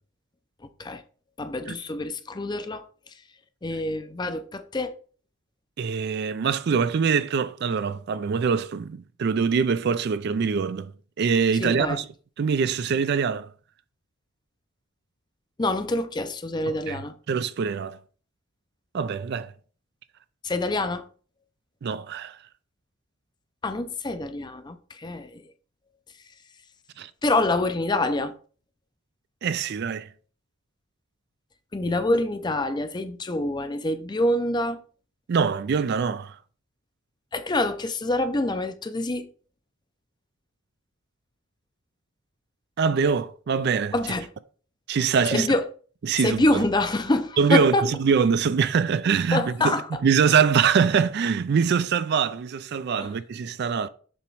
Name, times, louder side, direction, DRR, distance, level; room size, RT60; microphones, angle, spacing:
voice 1, 1.4-2.8 3.6-4.9 11.6-12.0 15.6-17.1 20.4-21.0 23.6-25.4 27.2-28.3 31.7-34.8 37.3-39.3 43.9-44.3 45.3-45.6 46.2-47.9 49.3-50.0 53.0-53.1, left 2 dB, 20° left, 0.5 m, -26 dB
voice 2, 5.8-10.9 11.2-12.0 12.4-13.5 16.7-17.0 17.3-18.0 18.9-19.5 21.8-22.4 27.0-27.1 29.4-30.1 35.3-36.4 42.8-43.9 44.9-45.5 46.0-46.6 47.4-47.7 48.0-49.8 50.0-53.9, right 6 dB, 50° right, 0.3 m, -23 dB
7.0 x 3.0 x 4.6 m
head